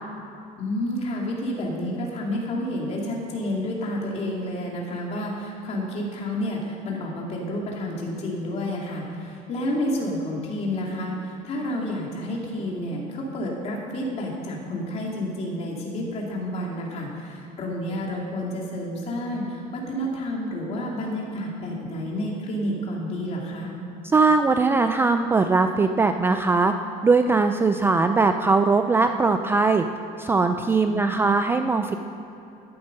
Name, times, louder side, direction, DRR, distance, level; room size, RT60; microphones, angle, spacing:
voice 1, 0.6-23.7 30.8-31.2, left 1 dB, 40° left, -2 dB, 2.8 m, -30 dB
voice 2, 24.0-26.7 27.0-29.8 30.2-32.0, right 4 dB, 15° right, 7 dB, 0.3 m, -20 dB
13.5 x 11.5 x 5.4 m, 3.0 s
cardioid pair, 160°, 17 cm